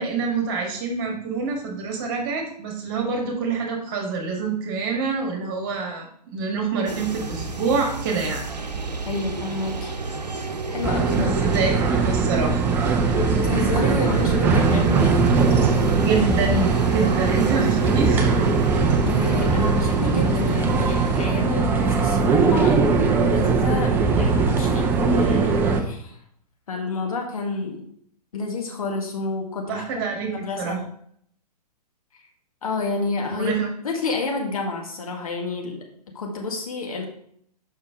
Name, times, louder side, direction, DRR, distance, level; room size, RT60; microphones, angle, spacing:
voice 1, 0.0-8.4 11.1-12.6 16.0-18.3 29.7-30.3 30.6-30.8 33.3-33.7, right 4 dB, 35° right, 2 dB, 1.6 m, -26 dB
sound 1, 6.9-21.3, right 4 dB, 80° right, 0.8 m, -31 dB
voice 2, 9.1-9.9 10.7-11.3 13.0-15.2 19.0-26.2 26.7-27.9 28.3-29.9 30.2-30.8 32.6-33.5 33.8-35.8 36.1-37.1, left 3 dB, 60° left, 1 dB, 1.7 m, -29 dB
sound 2, 10.8-25.8, right 4 dB, 10° right, 0.4 m, -20 dB
6.7 x 5.5 x 3.7 m, 0.66 s
figure-of-eight pair, 120°, 21 cm